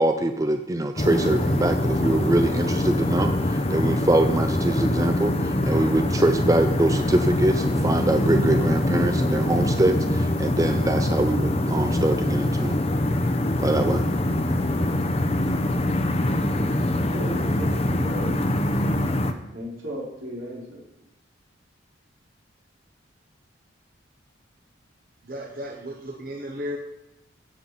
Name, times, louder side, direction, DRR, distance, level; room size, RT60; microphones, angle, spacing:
voice 1, 0.0-12.8 13.6-14.0, right 1 dB, 15° right, 7 dB, 0.4 m, -23 dB
sound 1, 1.0-19.3, left 1 dB, 30° left, 0.8 m, -24 dB
voice 2, 17.1-18.4 19.5-20.8, equal, 85° right, -6 dB, 5.3 m, -34 dB
voice 3, 25.2-26.8, equal, 45° right, 0 dB, 1.2 m, -34 dB
16.0 x 7.7 x 4.2 m, 0.87 s
head